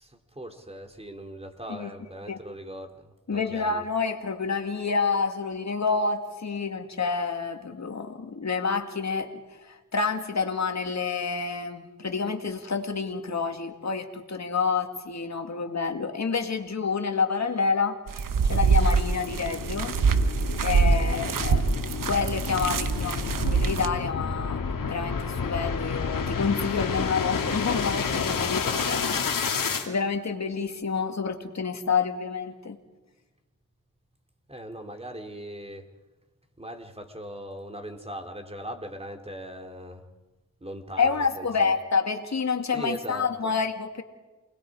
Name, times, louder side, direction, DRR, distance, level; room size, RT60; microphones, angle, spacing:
voice 1, 0.0-3.9 34.5-35.9 36.6-40.1 40.6-41.8 42.7-43.5, equal, 20° right, 5 dB, 3.1 m, -40 dB
voice 2, 3.3-18.0 18.4-20.0 20.6-29.3 29.9-32.8 41.0-44.0, left 5 dB, 55° left, 6 dB, 2.4 m, -28 dB
sound 1, 18.1-23.9, right 5 dB, 75° right, 1.3 m, -24 dB
sound 2, 18.4-29.9, left 5 dB, 80° left, 2.3 m, -30 dB
28.5 x 20.5 x 4.9 m, 1.2 s
cardioid pair, 50°, 32 cm